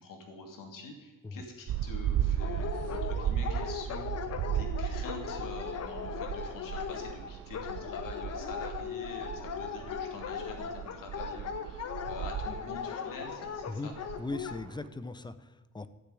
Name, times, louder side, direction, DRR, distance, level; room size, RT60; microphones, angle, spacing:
voice 1, 0.0-4.0 4.5-14.0, left 3 dB, 75° left, 3 dB, 2.8 m, -46 dB
sound 1, 1.7-14.9, right 10 dB, 50° right, 0.4 m, -36 dB
Dog, 2.4-14.6, left 7 dB, 50° left, 1.1 m, -38 dB
voice 2, 14.2-15.9, left 3 dB, 15° left, 13 dB, 0.5 m, -39 dB
12.5 x 6.8 x 9.7 m, 1.2 s
cardioid pair, 140°, 33 cm